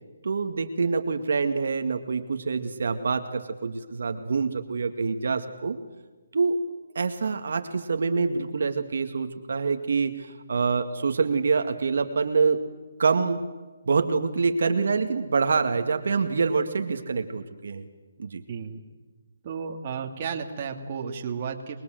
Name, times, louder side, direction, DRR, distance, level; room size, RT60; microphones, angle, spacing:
voice 1, 0.2-5.8 6.3-6.6 7.0-12.6 13.0-13.4 13.9-17.9 18.2-18.4, right 4 dB, 60° right, 6 dB, 2.0 m, -26 dB
voice 2, 18.5-18.8 19.4-21.8, right 6 dB, 30° right, 2 dB, 2.6 m, -33 dB
26.5 x 22.0 x 7.8 m, 1.3 s
hypercardioid pair, 165°, 0 cm